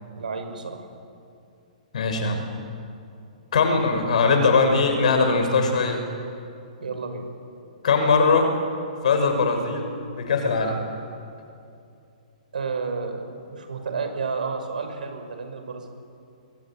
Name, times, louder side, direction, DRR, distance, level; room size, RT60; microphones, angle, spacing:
voice 1, 0.1-0.9 6.8-7.2 12.5-15.9, right 4 dB, 90° right, 6 dB, 6.2 m, -31 dB
voice 2, 1.9-2.4 3.5-6.0 7.8-8.5 9.0-10.8, left 4 dB, 60° left, 5 dB, 6.2 m, -21 dB
26.5 x 23.0 x 9.1 m, 2.6 s
hypercardioid pair, 170°, 4 cm